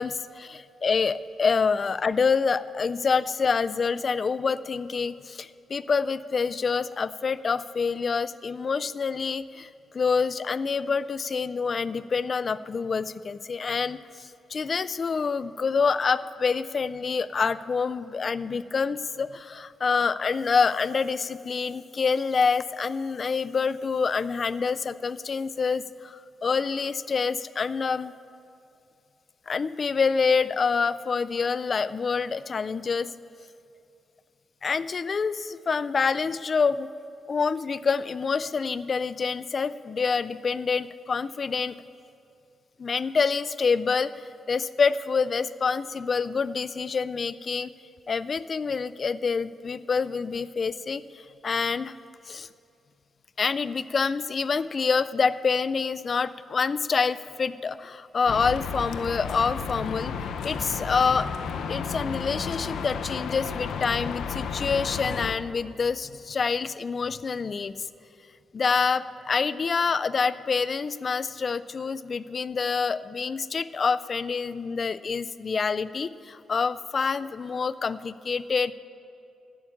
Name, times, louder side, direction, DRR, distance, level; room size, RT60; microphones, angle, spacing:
voice 1, 0.0-28.1 29.5-33.1 34.6-36.9 37.3-41.8 42.8-47.7 48.1-51.9 52.3-52.5 53.4-60.1 60.4-61.3 61.7-67.9 68.5-78.7, left 5 dB, 40° left, 15 dB, 0.3 m, -27 dB
sound 1, 58.3-65.4, left 6 dB, 85° left, 0.6 m, -33 dB
11.5 x 7.0 x 8.4 m, 2.6 s
cardioid pair, 105°, 0 cm